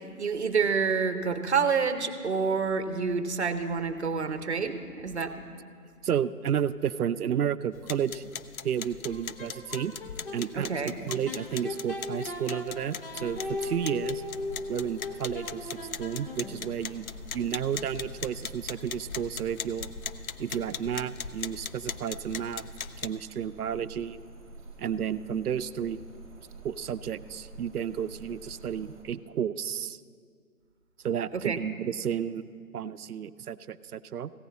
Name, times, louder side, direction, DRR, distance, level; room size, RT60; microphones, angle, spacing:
voice 1, 0.2-5.5 10.5-11.0 31.3-31.6, right 5 dB, 45° right, 10 dB, 0.8 m, -28 dB
voice 2, 6.0-8.3 8.6-9.9 10.3-14.2 14.7-17.1 17.3-19.9 20.4-22.7 23.0-24.2 24.8-26.0 26.6-30.0 31.0-32.5 32.7-34.3, right 8 dB, 75° right, 15 dB, 0.5 m, -32 dB
sound 1, 7.7-23.1, left 7 dB, 65° left, 0.6 m, -40 dB
sound 2, 9.0-10.4 11.3-16.7, left 2 dB, 40° left, 0.8 m, -38 dB
sound 3, 13.1-29.0, right 2 dB, 20° right, 1.5 m, -48 dB
15.5 x 5.3 x 8.3 m, 2.1 s
figure-of-eight pair, 160°, 46 cm